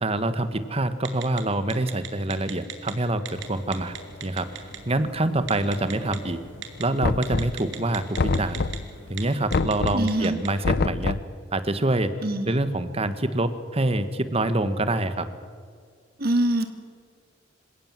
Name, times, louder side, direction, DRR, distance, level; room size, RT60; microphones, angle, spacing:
voice 1, 0.0-4.0 4.2-6.4 6.8-8.6 9.1-11.1 11.5-12.2 12.4-15.3, right 2 dB, 35° right, 11 dB, 1.4 m, -26 dB
Telephone, 1.1-1.4 1.7-2.9 3.3-3.4 3.7-4.8 5.5-6.2 6.6-6.8 7.2-8.8 9.1-9.2 9.5-10.5, right 10 dB, 90° right, 2.9 m, -35 dB
sound 1, 3.3-9.5, equal, 80° left, 6.7 m, -45 dB
Knock, 7.0-7.7 8.2-9.0 9.5-10.1 10.6-11.4, left 3 dB, 55° left, 0.6 m, -26 dB
voice 2, 9.9-10.4 12.2-12.5 16.2-16.6, right 1 dB, 55° right, 7 dB, 1.7 m, -23 dB
26.5 x 17.0 x 7.6 m, 2.1 s
head